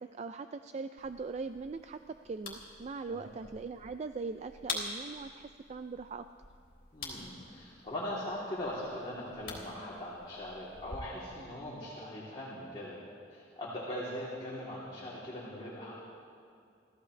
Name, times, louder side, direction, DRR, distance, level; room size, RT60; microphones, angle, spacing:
voice 1, 0.0-6.3, right 4 dB, 35° right, 9 dB, 0.3 m, -41 dB
sound 1, 1.0-11.0, left 3 dB, 50° left, 3.3 m, -46 dB
voice 2, 6.9-15.9, left 1 dB, 25° left, -9 dB, 3.1 m, -40 dB
28.5 x 14.5 x 3.3 m, 2.4 s
head